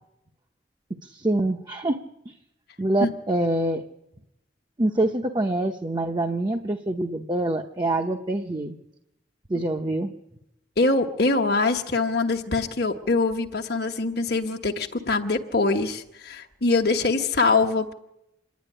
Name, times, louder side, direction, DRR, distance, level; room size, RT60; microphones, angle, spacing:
voice 1, 1.0-2.0 2.3-2.4 2.8-3.8 4.8-8.8 9.5-10.1, right 1 dB, 25° right, 4 dB, 0.8 m, -25 dB
voice 2, 10.8-17.9, left 3 dB, 60° left, 2 dB, 1.3 m, -23 dB
26.0 x 10.5 x 10.0 m, 0.88 s
head